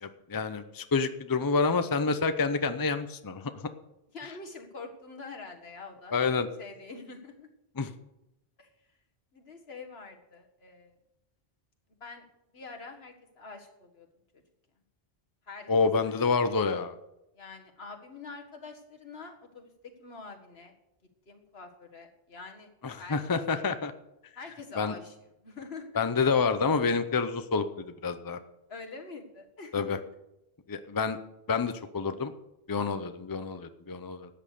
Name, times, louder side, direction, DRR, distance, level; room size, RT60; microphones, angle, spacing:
voice 1, 0.0-3.5 6.1-6.5 7.8-7.9 15.7-16.9 22.8-23.9 24.8-25.0 26.0-28.4 29.7-30.0 30.7-31.2 31.5-32.3 32.7-34.3, left 4 dB, 25° left, 10 dB, 0.7 m, -28 dB
voice 2, 4.1-6.1 6.6-7.5 8.6-8.7 9.3-10.9 12.0-12.3 12.5-14.1 15.5-15.7 16.1-16.2 17.3-19.7 20.0-20.7 21.3-22.7 23.0-23.2 23.5-23.6 24.4-25.2 25.4-25.9 28.7-30.0, left 4 dB, 75° left, 3 dB, 2.0 m, -45 dB
13.0 x 8.8 x 6.7 m, 0.87 s
omnidirectional pair, 1.1 m